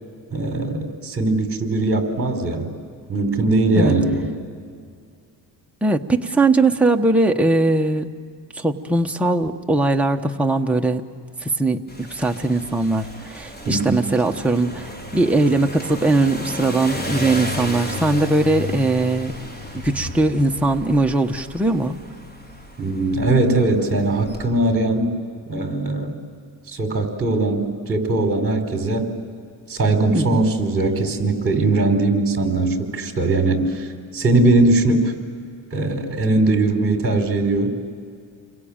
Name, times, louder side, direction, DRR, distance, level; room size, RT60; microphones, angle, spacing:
voice 1, 0.3-2.7 3.1-4.3 13.6-14.1 22.8-25.1 25.5-26.2 26.7-29.1 29.7-33.9 34.1-35.1 35.7-37.8, right 2 dB, 30° right, 4 dB, 4.7 m, -20 dB
voice 2, 5.8-8.1 8.5-11.0 11.4-19.3 19.7-22.0 30.1-30.4, right 2 dB, 5° right, 2 dB, 1.2 m, -20 dB
sound 1, 11.9-24.4, left 1 dB, 25° left, 4.8 m, -33 dB
29.5 x 23.0 x 8.9 m, 2.3 s
cardioid pair, 120°, 42 cm